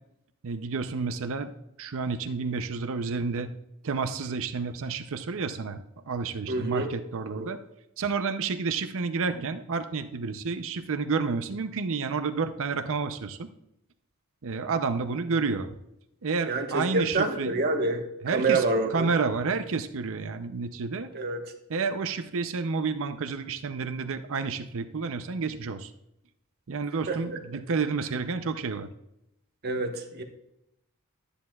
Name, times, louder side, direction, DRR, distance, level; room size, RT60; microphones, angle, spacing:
voice 1, 0.4-1.5 1.8-3.5 3.8-7.6 8.0-13.5 14.4-15.7 16.2-17.6 18.2-18.7 18.9-21.1 21.7-25.9 26.7-28.9, right 4 dB, 65° right, 9 dB, 0.6 m, -30 dB
voice 2, 6.5-6.9 7.3-7.5 16.5-19.1 21.1-21.4 27.1-27.2 29.6-30.2, right 3 dB, 45° right, 3 dB, 1.3 m, -27 dB
13.0 x 10.0 x 2.4 m, 0.84 s
head